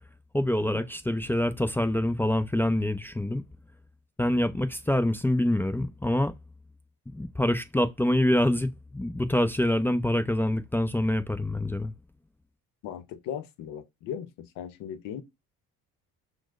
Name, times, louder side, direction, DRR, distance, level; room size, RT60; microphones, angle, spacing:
voice 1, 0.3-3.4 4.2-6.3 7.1-11.9, left 1 dB, 5° left, 0.4 m, -26 dB
voice 2, 12.8-15.2, left 9 dB, 70° left, 0.7 m, -38 dB
6.0 x 2.1 x 2.4 m
supercardioid pair, 70°, 35 cm